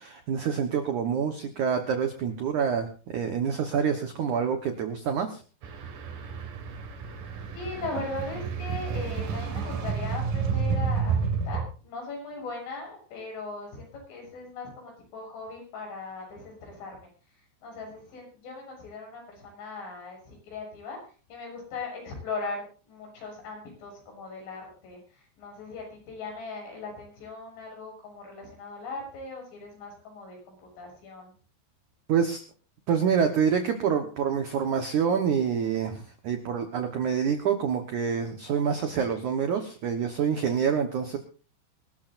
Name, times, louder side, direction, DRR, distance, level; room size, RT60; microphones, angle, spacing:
voice 1, 0.0-2.9 3.1-5.4 32.1-32.4 32.9-41.2, right 7 dB, 85° right, 6 dB, 1.7 m, -27 dB
sound 1, 5.6-11.6, right 5 dB, 55° right, 2.8 m, -30 dB
voice 2, 7.5-17.0 17.6-21.0 21.3-31.3, left 3 dB, 75° left, 1 dB, 9.4 m, -39 dB
25.0 x 13.5 x 2.6 m, 0.37 s
omnidirectional pair, 5.5 m